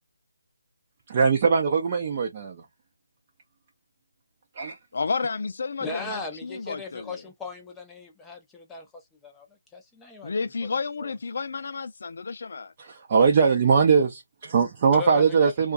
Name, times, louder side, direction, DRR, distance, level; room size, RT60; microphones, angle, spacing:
voice 1, 1.1-2.6 4.6-4.8 12.8-15.7, right 5 dB, 35° right, 0.6 m, -21 dB
voice 2, 4.9-7.2 10.2-12.7, left 4 dB, 55° left, 0.5 m, -31 dB
voice 3, 5.8-8.9 9.2-9.5 9.7-10.3 11.0-11.1 14.9-15.7, left 3 dB, 5° left, 0.6 m, -37 dB
2.4 x 2.3 x 2.4 m
figure-of-eight pair, 160°, 0 cm